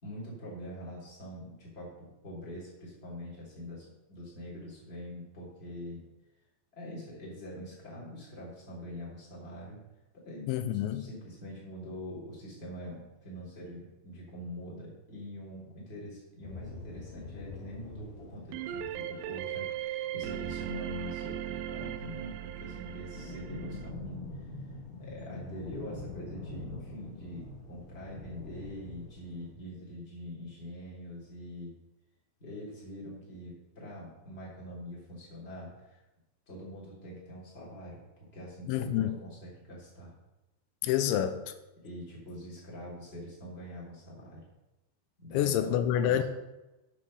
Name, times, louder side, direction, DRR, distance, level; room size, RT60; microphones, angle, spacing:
voice 1, 0.0-6.0 6.7-9.8 10.2-10.5 10.9-24.5 25.0-31.7 32.4-36.0 36.5-38.0 38.3-40.1 41.8-44.5 45.2-45.8 46.0-46.2, equal, 15° left, -5 dB, 2.8 m, -44 dB
voice 2, 10.5-11.0 38.7-39.2 40.8-41.4 45.3-46.2, left 11 dB, 90° left, 9 dB, 3.1 m, -27 dB
sound 1, 16.4-21.8 22.1-29.5, left 3 dB, 55° left, 1.5 m, -45 dB
sound 2, 18.5-23.9, right 11 dB, 90° right, 3.0 m, -38 dB
7.5 x 7.1 x 6.4 m, 1.0 s
omnidirectional pair, 5.2 m